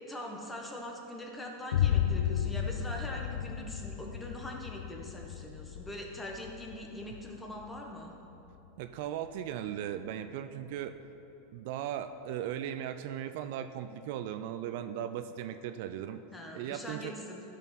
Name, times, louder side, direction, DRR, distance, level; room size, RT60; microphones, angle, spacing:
voice 1, 0.0-8.1 16.3-17.4, left 1 dB, 15° left, 0 dB, 1.4 m, -42 dB
Boom, 1.7-9.6, left 10 dB, 80° left, 0.3 m, -34 dB
voice 2, 8.8-10.9 11.5-16.2 16.5-17.1, right 10 dB, 65° right, 10 dB, 0.4 m, -37 dB
12.0 x 6.5 x 4.2 m, 3.0 s
hypercardioid pair, 105°, 0 cm